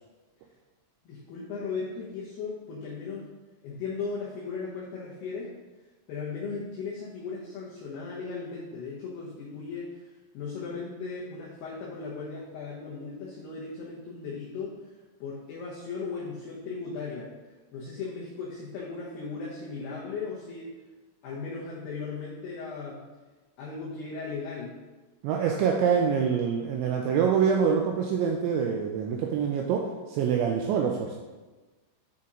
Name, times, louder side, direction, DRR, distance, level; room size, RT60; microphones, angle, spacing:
voice 1, 1.1-3.3 3.6-5.5 6.1-10.0 10.3-14.9 15.2-17.3 17.7-20.7 21.2-23.0 23.6-24.8, left 4 dB, 80° left, -6 dB, 2.4 m, -37 dB
voice 2, 25.2-31.1, right 7 dB, 85° right, 1 dB, 2.6 m, -25 dB
8.4 x 4.2 x 3.7 m, 1.2 s
omnidirectional pair, 5.8 m